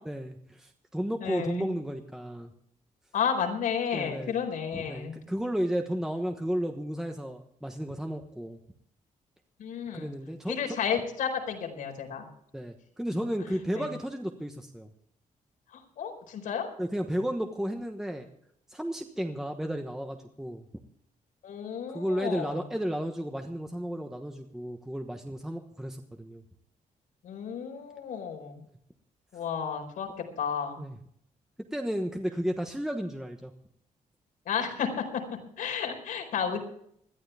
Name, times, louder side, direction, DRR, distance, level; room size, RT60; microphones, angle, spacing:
voice 1, 0.0-2.5 3.9-4.4 4.7-8.6 9.9-10.8 12.5-14.9 16.8-18.3 18.7-20.7 21.9-26.4 30.8-31.0 31.7-33.5, equal, 5° right, 4 dB, 1.2 m, -33 dB
voice 2, 1.2-1.7 3.1-5.2 9.6-10.1 10.5-12.3 13.7-13.8 15.7-16.7 21.4-22.6 27.2-28.6 29.3-30.1 30.4-30.8 34.5-35.0 35.6-36.6, left 7 dB, 90° left, 2 dB, 4.6 m, -32 dB
21.0 x 14.0 x 3.5 m, 0.67 s
cardioid pair, 140°, 14 cm